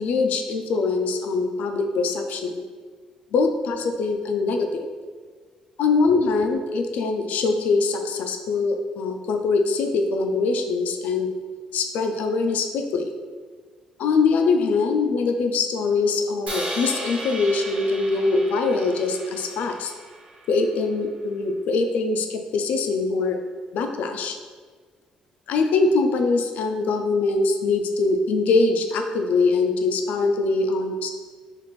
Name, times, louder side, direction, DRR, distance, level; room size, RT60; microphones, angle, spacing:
voice 1, 0.0-2.6 3.3-4.9 5.8-11.3 11.7-13.0 14.0-19.9 20.5-23.4 23.7-24.4 25.5-31.1, left 3 dB, 80° left, 5 dB, 0.3 m, -23 dB
Crash cymbal, 16.5-20.7, right 1 dB, 60° right, 1.0 m, -35 dB
3.1 x 2.5 x 4.1 m, 1.6 s
cardioid pair, 100°, 3 cm